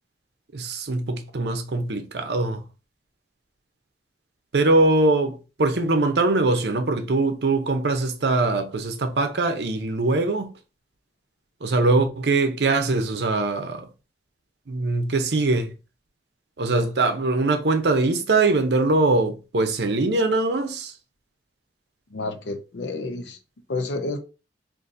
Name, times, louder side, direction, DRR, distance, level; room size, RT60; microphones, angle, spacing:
voice 1, 0.5-2.6 4.5-10.5 11.6-13.9 14.7-15.7 16.6-20.9, right 2 dB, 70° right, 0.6 m, -22 dB
voice 2, 22.1-23.4 23.7-24.2, left 2 dB, 80° left, 0.6 m, -30 dB
3.9 x 2.6 x 2.5 m
head